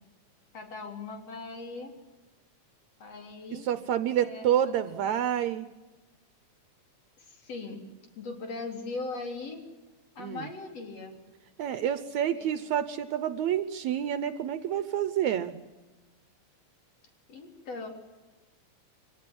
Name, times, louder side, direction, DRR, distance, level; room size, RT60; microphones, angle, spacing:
voice 1, 0.5-1.9 3.0-3.7 4.2-5.1 7.2-7.8 8.2-9.6 10.2-11.1 12.3-12.6 17.3-17.9, left 3 dB, 55° left, 3 dB, 4.6 m, -39 dB
voice 2, 3.5-5.7 10.2-10.5 11.6-15.6, right 10 dB, 75° right, 12 dB, 2.1 m, -28 dB
24.5 x 18.0 x 9.8 m, 1.2 s
omnidirectional pair, 3.4 m